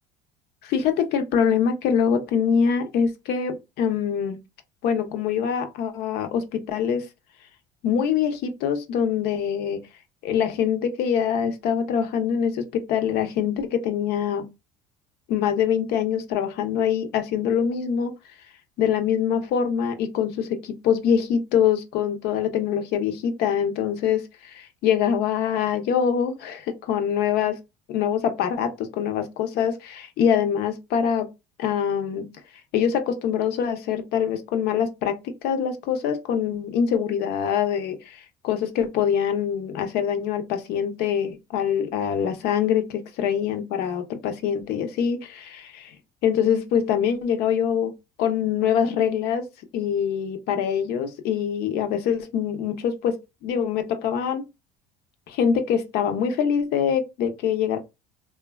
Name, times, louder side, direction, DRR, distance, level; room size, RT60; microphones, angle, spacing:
voice 1, 0.6-4.4 4.8-7.1 7.8-9.8 10.2-14.5 15.3-18.1 18.8-27.6 27.9-31.3 31.6-32.3 32.7-46.0 46.2-49.5 49.7-54.4 55.3-57.8, left 8 dB, 65° left, 0.6 m, -24 dB
3.1 x 2.2 x 2.2 m
supercardioid pair, 100°, 18 cm